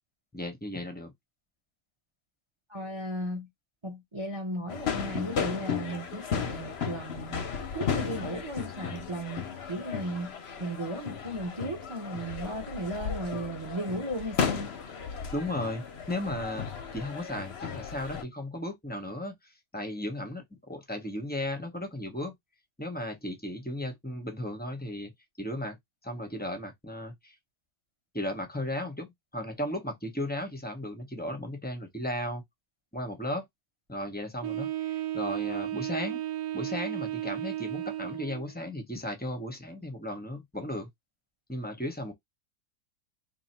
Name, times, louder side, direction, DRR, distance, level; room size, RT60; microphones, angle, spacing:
voice 1, 0.3-1.1 15.3-19.3 19.7-22.3 22.8-25.1 25.4-25.8 26.0-27.3 28.1-32.4 32.9-33.4 33.9-34.7 35.1-36.2 36.5-40.9 41.5-42.1, left 1 dB, 10° left, 0.7 m, -35 dB
voice 2, 2.7-3.5 3.8-7.4 7.7-14.7, right 1 dB, 20° right, 0.8 m, -35 dB
sound 1, 4.7-18.2, left 7 dB, 50° left, 0.8 m, -35 dB
Wind instrument woodwind instrument, 34.4-38.5, right 13 dB, 75° right, 1.2 m, -34 dB
2.9 x 2.8 x 4.3 m
omnidirectional pair, 1.8 m